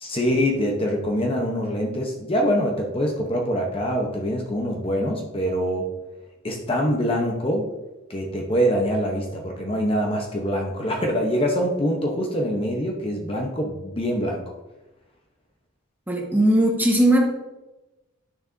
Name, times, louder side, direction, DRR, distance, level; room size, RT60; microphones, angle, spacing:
voice 1, 0.0-5.9 6.4-7.6 8.1-14.4, equal, 25° left, 1 dB, 0.8 m, -24 dB
voice 2, 16.1-17.2, right 1 dB, 10° right, 0 dB, 1.2 m, -18 dB
9.0 x 6.7 x 2.7 m, 1.0 s
head